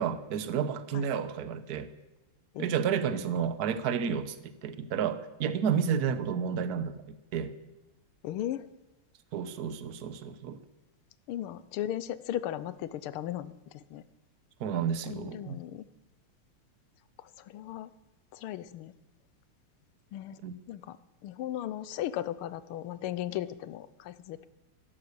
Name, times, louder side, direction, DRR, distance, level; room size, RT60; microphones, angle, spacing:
voice 1, 0.0-1.9 2.6-7.5 9.3-10.6 14.6-15.6 20.4-20.5, right 7 dB, 60° right, 12 dB, 1.2 m, -31 dB
voice 2, 8.2-8.7 11.3-14.0 15.1-15.8 17.2-17.9 18.3-18.9 20.1-20.4 20.7-21.0 21.2-24.5, left 12 dB, 80° left, 15 dB, 1.6 m, -36 dB
14.0 x 11.5 x 6.8 m, 1.0 s
omnidirectional pair, 2.4 m